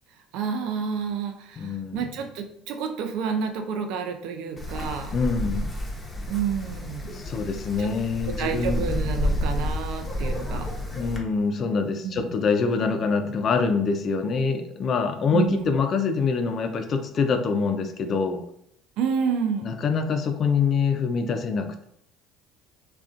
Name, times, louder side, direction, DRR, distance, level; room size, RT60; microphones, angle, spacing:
voice 1, 0.3-5.1 6.3-7.2 7.8-7.9 8.3-10.7 12.0-12.2 15.3-15.7 19.0-19.7, right 6 dB, 70° right, 6 dB, 0.4 m, -29 dB
voice 2, 1.6-2.1 5.1-5.7 7.1-8.8 11.0-18.4 19.6-21.8, left 5 dB, 50° left, 7 dB, 0.3 m, -25 dB
Wind, 4.6-11.2, left 1 dB, 20° left, 0.7 m, -30 dB
2.3 x 2.1 x 2.5 m, 0.70 s
hypercardioid pair, 70°, 0 cm